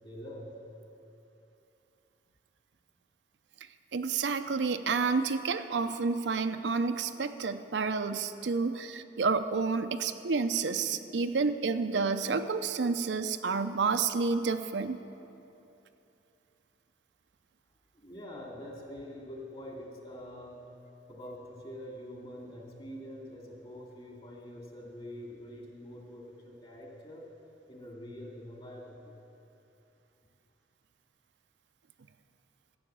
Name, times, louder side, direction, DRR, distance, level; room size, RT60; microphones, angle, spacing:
voice 1, 0.0-0.5 17.9-20.6 21.1-27.2 27.7-29.1, equal, 35° left, -1 dB, 2.4 m, -45 dB
voice 2, 3.9-15.0, right 4 dB, 80° right, 9 dB, 0.6 m, -30 dB
13.5 x 7.0 x 8.7 m, 2.8 s
head